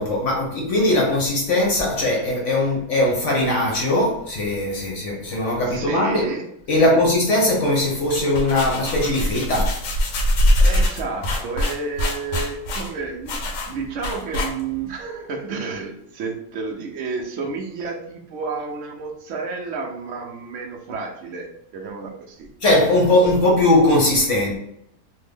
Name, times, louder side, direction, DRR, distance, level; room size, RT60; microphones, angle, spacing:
voice 1, 0.0-6.3 6.7-9.8 22.6-24.6, left 1 dB, 55° left, 0.9 m, -20 dB
voice 2, 5.6-7.1 10.6-22.5, right 4 dB, 70° right, 0.7 m, -31 dB
sound 1, 8.0-14.9, left 1 dB, 85° left, 1.3 m, -23 dB
3.3 x 2.1 x 3.4 m
omnidirectional pair, 1.8 m